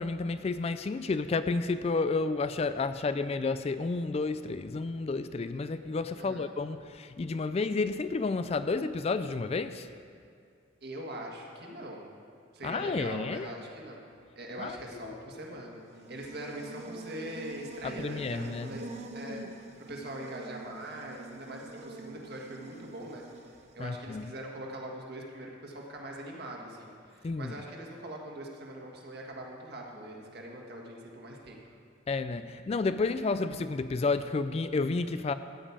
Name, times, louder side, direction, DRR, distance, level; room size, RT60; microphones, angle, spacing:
voice 1, 0.0-9.9 12.6-13.5 14.6-14.8 15.0-15.2 17.8-18.7 23.8-24.3 27.2-27.5 32.1-35.3, left 3 dB, 30° left, 11 dB, 0.3 m, -31 dB
voice 2, 6.2-6.5 10.8-12.0 12.5-14.0 14.4-18.9 19.1-19.4 19.8-31.7, right 1 dB, 55° right, 0 dB, 1.8 m, -42 dB
Buzz, 15.7-23.9, right 3 dB, 35° right, 0.6 m, -46 dB
14.0 x 5.4 x 8.6 m, 2.3 s
head